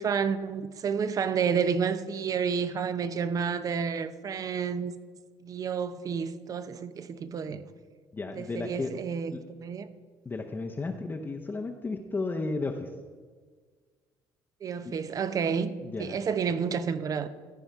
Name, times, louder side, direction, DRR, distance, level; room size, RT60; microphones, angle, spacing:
voice 1, 0.0-4.9 5.4-7.6 8.4-9.9 14.6-15.7 16.0-17.3, right 6 dB, 45° right, 0.7 m, -30 dB
voice 2, 8.1-8.9 9.3-9.4 10.2-12.9 14.8-15.0 15.8-16.2, left 3 dB, 25° left, 0.8 m, -33 dB
14.0 x 5.3 x 4.6 m
supercardioid pair, 85°, 8 cm